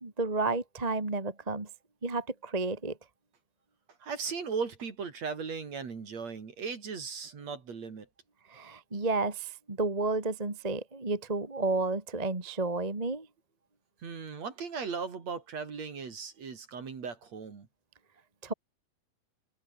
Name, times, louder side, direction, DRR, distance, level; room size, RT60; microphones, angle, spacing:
voice 1, 0.0-1.7 2.0-3.0 8.5-13.3 18.4-18.5, right 3 dB, 15° right, 1.8 m, -31 dB
voice 2, 4.0-8.1 14.0-17.7, right 5 dB, 50° right, 4.2 m, -37 dB
open air
omnidirectional pair, 4.2 m